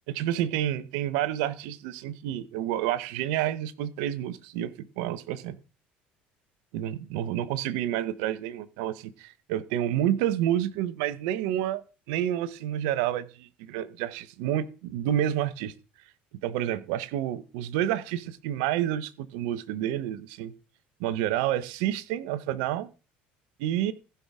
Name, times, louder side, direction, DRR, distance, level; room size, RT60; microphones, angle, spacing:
voice 1, 0.1-5.6 6.7-11.8 12.1-15.7 16.4-20.5 21.0-22.9 23.6-23.9, right 12 dB, 75° right, 16 dB, 0.8 m, -29 dB
15.5 x 5.7 x 3.6 m, 0.34 s
hypercardioid pair, 75°, 5 cm